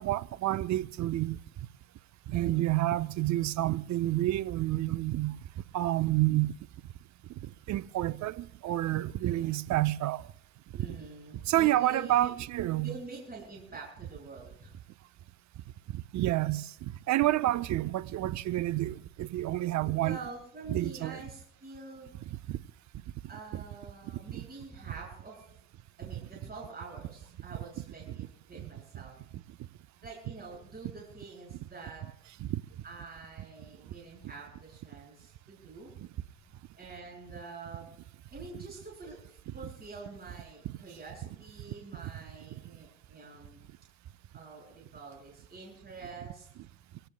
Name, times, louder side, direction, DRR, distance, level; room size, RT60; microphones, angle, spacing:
voice 1, 0.0-1.4 2.3-5.3 5.7-6.5 7.7-10.2 11.5-12.9 16.1-20.2 20.7-21.2 22.5-22.6 24.3-24.4 32.4-32.6 38.5-38.6, right 15 dB, 50° right, 0.7 m, -29 dB
voice 2, 9.2-9.6 10.7-12.3 12.8-14.7 19.7-22.1 23.3-25.5 26.0-29.1 30.0-32.0 32.8-36.0 36.8-37.9 38.3-43.6 44.3-46.5, right 3 dB, 25° right, 7.2 m, -47 dB
25.5 x 18.0 x 2.3 m
hypercardioid pair, 70°, 35 cm